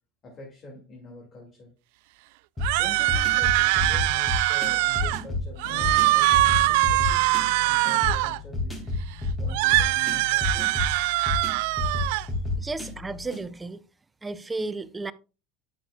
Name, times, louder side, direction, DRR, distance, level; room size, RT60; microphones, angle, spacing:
voice 1, 0.2-1.7 2.8-7.2 7.6-8.8 9.4-10.8 12.1-12.4 12.8-12.9, left 1 dB, 35° left, 2.5 m, -44 dB
sound 1, 2.6-13.4, left 2 dB, 15° left, 2.4 m, -31 dB
sound 2, 2.6-5.2 5.6-8.4 9.5-12.2, right 20 dB, 75° right, 0.3 m, -23 dB
sound 3, 5.6-13.1, left 5 dB, 90° left, 2.2 m, -49 dB
voice 2, 12.6-13.8 14.2-15.1, right 3 dB, 15° right, 0.5 m, -33 dB
9.7 x 7.3 x 2.4 m
supercardioid pair, 110°, 0 cm